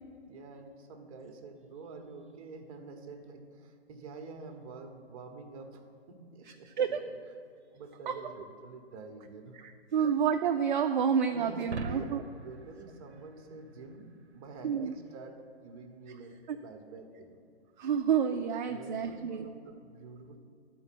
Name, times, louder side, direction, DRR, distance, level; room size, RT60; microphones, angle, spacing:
voice 1, 0.2-7.0 7.7-9.6 10.0-10.1 11.3-16.3 16.6-17.4 18.7-20.4, right 3 dB, 35° right, 5 dB, 1.0 m, -47 dB
voice 2, 9.9-12.2 14.6-14.9 16.5-16.6 17.8-19.5, right 7 dB, 50° right, 5 dB, 0.4 m, -29 dB
sound 1, 11.6-14.1, right 3 dB, 90° right, 0.6 m, -42 dB
12.0 x 4.5 x 5.9 m, 2.3 s
figure-of-eight pair, 130°, 32 cm